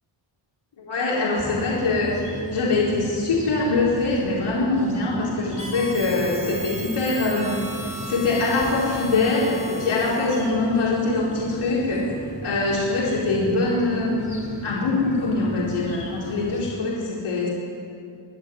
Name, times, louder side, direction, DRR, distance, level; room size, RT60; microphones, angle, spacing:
voice 1, 0.8-12.1 12.4-17.5, left 2 dB, 85° left, -5 dB, 4.5 m, -23 dB
sound 1, 1.4-16.7, equal, 15° left, 4.2 m, -38 dB
Harmonica, 5.6-10.6, equal, 15° right, 1.8 m, -37 dB
24.0 x 11.5 x 10.0 m, 2.5 s
wide cardioid pair, 135°, 48 cm